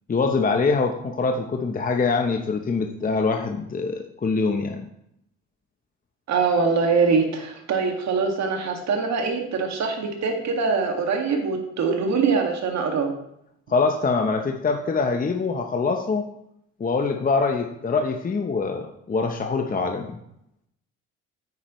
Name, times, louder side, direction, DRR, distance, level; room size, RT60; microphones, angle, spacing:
voice 1, 0.1-4.8 13.7-16.3 16.8-20.2, left 4 dB, 25° left, 4 dB, 0.9 m, -24 dB
voice 2, 6.3-13.1, right 4 dB, 60° right, 3 dB, 2.1 m, -23 dB
9.5 x 8.6 x 3.1 m, 0.77 s
supercardioid pair, 75°, 31 cm